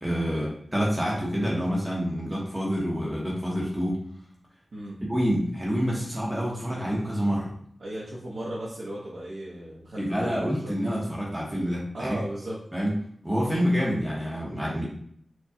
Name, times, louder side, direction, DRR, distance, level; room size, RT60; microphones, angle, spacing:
voice 1, 0.0-4.0 5.1-7.5 10.0-12.2 12.7-12.9 13.2-14.9, equal, 10° right, -5 dB, 0.8 m, -27 dB
voice 2, 7.8-10.7 11.9-12.6, right 1 dB, 75° right, -8 dB, 0.8 m, -36 dB
4.5 x 2.3 x 2.7 m, 0.64 s
wide cardioid pair, 95°, 0 cm